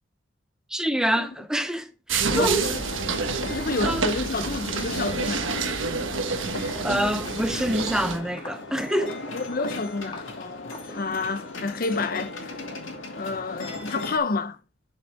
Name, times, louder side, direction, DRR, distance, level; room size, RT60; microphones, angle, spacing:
voice 1, 0.7-2.7 3.4-3.6 3.8-4.1 6.8-9.2, equal, 5° right, 0.6 m, -26 dB
sound 1, 2.1-8.2, right 4 dB, 70° right, 1.2 m, -28 dB
sound 2, 2.6-14.2, left 2 dB, 75° left, 2.1 m, -37 dB
voice 2, 3.5-5.5 9.3-12.6 13.1-14.6, left 3 dB, 45° left, 0.6 m, -29 dB
Walk footsteps, 4.9-5.1 5.4-11.5, left 1 dB, 25° left, 1.6 m, -45 dB
11.5 x 5.3 x 3.4 m
head